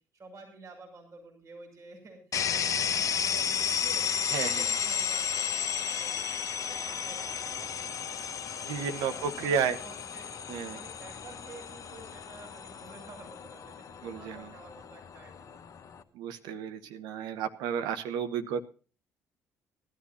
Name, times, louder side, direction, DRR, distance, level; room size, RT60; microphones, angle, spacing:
voice 1, 0.1-4.0 4.3-6.3 6.6-10.3 10.7-15.6, right 3 dB, 45° right, 1 dB, 6.0 m, -51 dB
sound 1, 2.3-16.0, left 7 dB, 45° left, 1.2 m, -33 dB
voice 2, 4.3-4.6 8.7-9.8 10.5-10.8 14.0-14.5 16.1-18.6, right 7 dB, 65° right, 8 dB, 1.1 m, -32 dB
19.0 x 13.0 x 2.7 m, 0.36 s
figure-of-eight pair, 45°, 8 cm